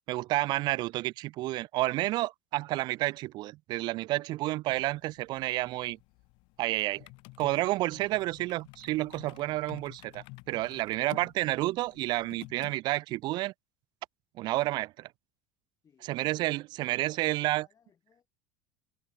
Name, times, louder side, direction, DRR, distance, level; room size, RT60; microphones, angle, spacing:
voice 1, 0.1-6.0 6.6-7.1 7.4-13.5 14.4-15.1 16.1-17.7, right 18 dB, 50° right, 0.4 m, -30 dB
sound 1, 4.7-12.7, left 26 dB, 60° left, 2.8 m, -52 dB
voice 2, 10.9-11.3 15.8-18.3, left 7 dB, 35° left, 8.0 m, -67 dB
hypercardioid pair, 70°, 10 cm